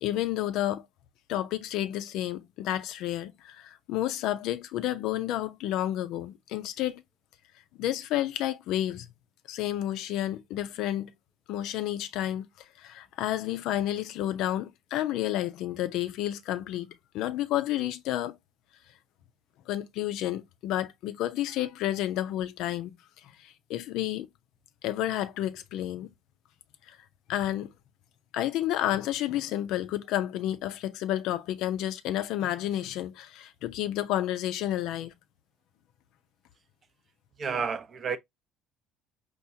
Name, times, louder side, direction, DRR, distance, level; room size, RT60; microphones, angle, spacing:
voice 1, 0.0-0.8 1.3-7.0 7.8-9.1 9.5-11.1 11.5-12.5 12.8-18.4 19.7-23.0 23.4-24.3 24.8-26.1 26.9-27.0 27.3-27.7 28.3-35.1, left 13 dB, 65° left, 0.4 m, -30 dB
voice 2, 37.4-38.2, right 6 dB, 45° right, 0.6 m, -30 dB
4.3 x 2.3 x 2.7 m
hypercardioid pair, 65°, 0 cm